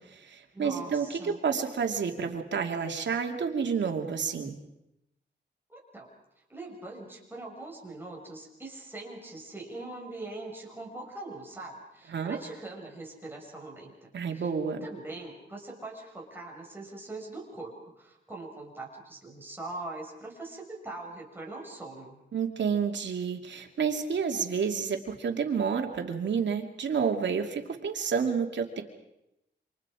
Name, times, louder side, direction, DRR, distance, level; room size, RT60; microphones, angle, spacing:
voice 1, 0.0-4.5 12.1-12.4 14.1-14.8 22.3-28.8, right 6 dB, 80° right, 4 dB, 2.6 m, -30 dB
voice 2, 0.5-1.4 5.7-6.1 6.5-14.1 14.3-14.5 14.8-22.2, right 2 dB, 10° right, -1 dB, 6.2 m, -42 dB
28.5 x 26.0 x 5.0 m, 0.86 s
wide cardioid pair, 155°, 19 cm